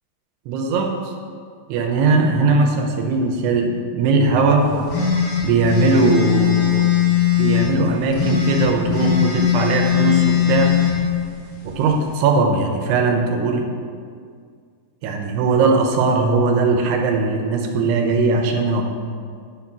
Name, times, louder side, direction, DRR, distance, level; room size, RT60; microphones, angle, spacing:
voice 1, 0.5-1.0 1.7-4.9 5.4-6.9 7.4-10.7 11.6-13.7 15.0-18.8, right 3 dB, 80° right, 2 dB, 2.8 m, -19 dB
sound 1, 4.9-7.7 8.1-10.9, left 9 dB, 40° left, 2.8 m, -19 dB
10.5 x 4.2 x 5.9 m, 2.1 s
omnidirectional pair, 4.9 m